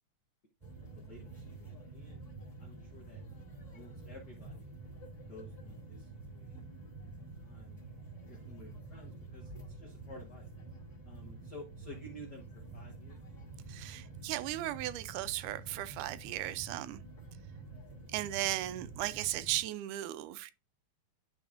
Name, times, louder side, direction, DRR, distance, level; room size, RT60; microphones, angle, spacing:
sound 1, 0.6-19.6, right 3 dB, 15° left, 2.0 m, -48 dB
voice 1, 0.9-2.2 2.6-3.2 3.7-4.7 5.3-7.8 8.3-10.5 11.0-13.2, left 1 dB, 80° left, 0.9 m, -53 dB
voice 2, 13.7-17.0 18.1-20.5, right 15 dB, 80° right, 2.0 m, -36 dB
11.5 x 4.1 x 2.5 m
omnidirectional pair, 3.7 m